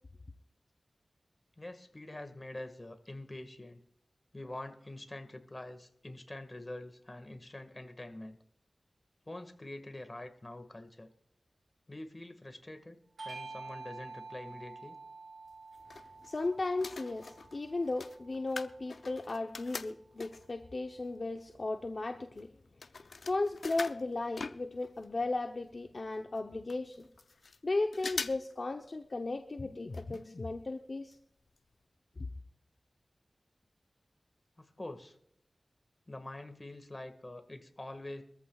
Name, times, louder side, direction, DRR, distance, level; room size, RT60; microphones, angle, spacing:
voice 1, 1.6-3.8 4.3-8.4 9.3-11.1 11.9-15.0 34.6-35.2 36.1-38.2, left 1 dB, 35° left, 7 dB, 1.8 m, -45 dB
Bell / Doorbell, 13.2-18.0, right 3 dB, 85° right, 1.8 m, -48 dB
sound 1, 15.5-16.4 16.7-20.6 21.2-21.3 21.5-25.1 25.4-25.5 25.7-25.8 26.3-26.4 26.7-27.6 27.9-28.5 28.8-28.9 29.9-30.2 30.5-30.6 31.1-31.2 31.6-31.7, left 4 dB, 85° left, 0.5 m, -43 dB
voice 2, 16.2-22.5 23.2-27.1 27.6-31.2, left 2 dB, 60° left, 4 dB, 0.8 m, -35 dB
24.0 x 14.0 x 2.4 m, 0.74 s
cardioid pair, 45°, 0 cm